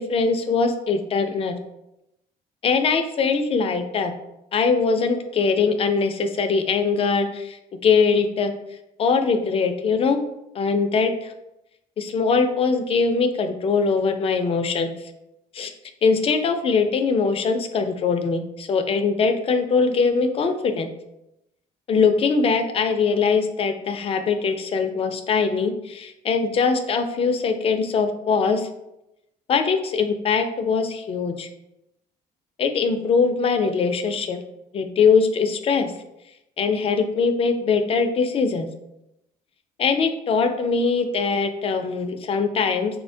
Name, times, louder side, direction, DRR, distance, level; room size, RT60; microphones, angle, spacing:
voice 1, 0.0-1.6 2.6-4.1 4.5-8.5 9.0-10.2 10.5-11.3 12.0-14.9 15.5-15.7 16.0-20.9 21.9-28.7 29.5-31.5 32.6-34.4 34.7-35.9 36.6-38.7 39.8-43.0, left 5 dB, 35° left, 7 dB, 0.4 m, -22 dB
4.1 x 2.1 x 2.6 m, 0.87 s
cardioid pair, 110°, 17 cm